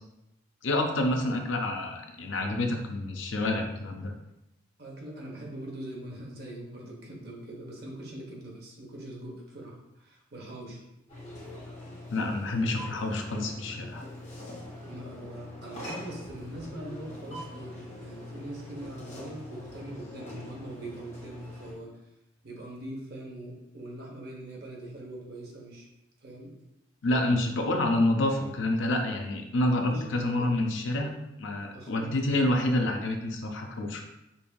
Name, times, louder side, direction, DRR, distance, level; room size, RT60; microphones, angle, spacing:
voice 1, 0.6-4.1 12.1-14.0 27.0-31.1 31.4-34.0, left 1 dB, 70° left, 3 dB, 0.5 m, -28 dB
voice 2, 4.8-10.8 14.8-21.9 22.4-25.9 26.2-26.5 29.9-30.0 30.4-30.5 30.9-31.1 31.7-32.1, right 1 dB, 50° right, -2 dB, 0.9 m, -42 dB
sound 1, 11.1-21.7, left 1 dB, 35° left, 1.3 m, -43 dB
5.3 x 2.6 x 2.2 m, 0.88 s
head